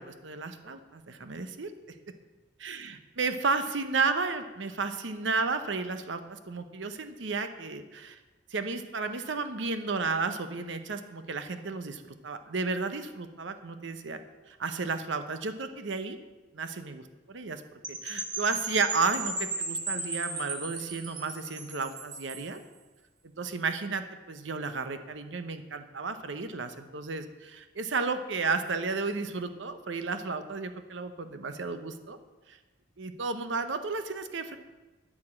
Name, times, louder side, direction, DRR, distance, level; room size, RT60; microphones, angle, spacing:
voice 1, 0.0-1.7 2.6-8.2 8.5-14.2 14.5-16.2 16.5-17.0 17.3-17.6 17.9-22.6 23.4-32.2 32.5-32.6 33.0-34.6, right 4 dB, 75° right, 9 dB, 0.8 m, -33 dB
Percussion / Wind chime, 17.8-22.5, right 3 dB, 25° right, 2.0 m, -35 dB
12.5 x 4.9 x 8.6 m, 1.2 s
head